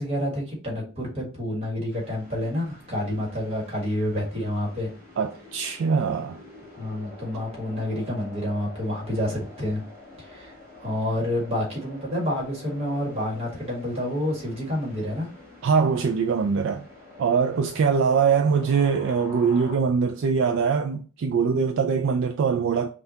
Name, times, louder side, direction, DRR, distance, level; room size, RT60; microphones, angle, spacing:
voice 1, 0.0-4.9 6.7-9.8 10.2-15.3, left 1 dB, 25° right, 1.6 m, -29 dB
sound 1, 1.9-19.8, left 2 dB, 10° right, 2.1 m, -46 dB
voice 2, 5.2-6.4 15.6-16.8 17.2-22.9, right 6 dB, 55° right, 0.3 m, -22 dB
5.5 x 2.3 x 2.7 m
head